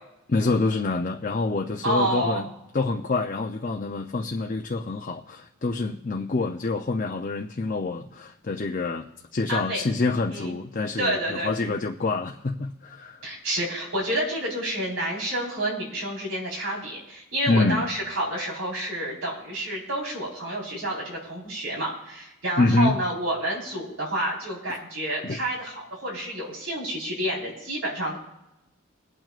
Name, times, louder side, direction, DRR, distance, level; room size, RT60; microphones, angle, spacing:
voice 1, 0.3-2.5 2.7-9.1 9.3-13.2 17.5-17.9 22.6-23.0 25.2-25.4, left 3 dB, 40° left, 2 dB, 0.6 m, -26 dB
voice 2, 1.8-2.4 9.5-9.8 10.3-10.6 11.0-11.8 13.2-28.2, right 1 dB, 85° right, -3 dB, 4.4 m, -29 dB
22.0 x 9.0 x 2.5 m, 0.90 s
head